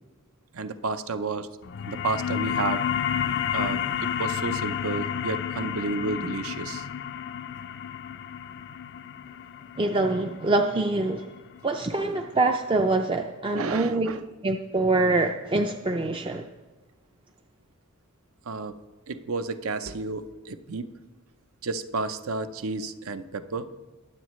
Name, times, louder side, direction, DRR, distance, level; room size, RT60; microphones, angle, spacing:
voice 1, 0.5-1.5 1.9-2.8 3.5-6.9 13.5-14.3 18.5-18.8 19.1-20.9 21.6-23.7, right 3 dB, 70° right, 10 dB, 0.6 m, -31 dB
sound 1, 1.6-12.7, left 8 dB, 50° left, 0.4 m, -31 dB
voice 2, 9.8-11.2 11.6-14.1 14.4-16.4, right 2 dB, 25° right, 4 dB, 0.4 m, -25 dB
21.0 x 8.1 x 3.1 m, 1.2 s
head